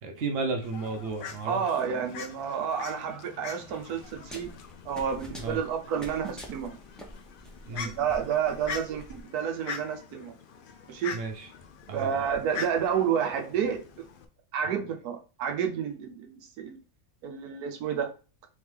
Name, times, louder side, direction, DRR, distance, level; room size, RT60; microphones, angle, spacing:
voice 1, 0.0-1.6 5.3-5.6 7.7-7.9 11.1-11.5 11.9-12.1, right 3 dB, 50° right, 0.9 m, -33 dB
Fowl, 0.6-14.2, left 6 dB, 75° left, 0.4 m, -43 dB
voice 2, 1.5-4.5 4.8-6.8 7.7-10.3 10.9-11.2 11.9-13.8 14.5-16.8 17.2-18.1, right 7 dB, 85° right, 1.2 m, -30 dB
sound 1, 4.0-9.2, equal, ahead, 0.5 m, -46 dB
3.5 x 3.5 x 3.3 m
omnidirectional pair, 1.6 m